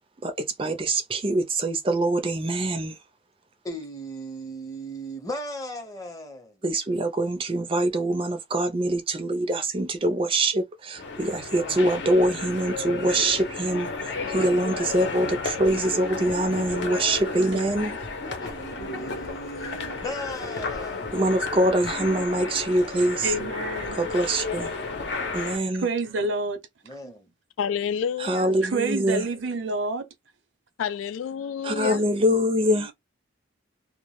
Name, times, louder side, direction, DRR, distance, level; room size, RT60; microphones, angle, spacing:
voice 1, 0.2-3.0 6.6-17.9 21.1-23.3 24.0-24.7 25.3-25.9 28.2-29.3 31.6-32.9, right 1 dB, 25° right, 0.4 m, -24 dB
voice 2, 3.6-6.6 18.4-21.1 26.8-27.3 29.3-29.6 32.6-32.9, equal, 20° left, 0.6 m, -37 dB
sound 1, 10.9-25.6, left 3 dB, 65° left, 0.7 m, -32 dB
voice 3, 17.5-18.0 23.2-24.0 25.8-26.6 28.6-30.1, right 2 dB, 75° right, 0.6 m, -28 dB
voice 4, 27.6-28.6 30.8-32.2, left 7 dB, 90° left, 0.3 m, -29 dB
2.2 x 2.0 x 3.0 m
head